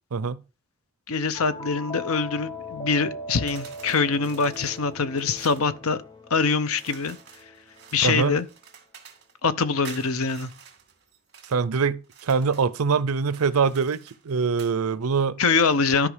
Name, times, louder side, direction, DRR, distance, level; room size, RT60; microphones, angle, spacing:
voice 1, 1.1-6.0 6.3-7.2 7.9-8.5 9.4-10.5 15.4-16.1, left 4 dB, 80° left, 0.8 m, -24 dB
sound 1, 1.3-7.8, left 1 dB, 20° left, 0.8 m, -39 dB
sound 2, 3.5-5.7 6.8-9.3 9.8-11.6 12.0-12.7 13.2-14.8, right 7 dB, 50° right, 2.4 m, -48 dB
voice 2, 8.0-8.4 11.5-15.4, right 5 dB, 90° right, 0.6 m, -24 dB
12.5 x 5.0 x 5.0 m
head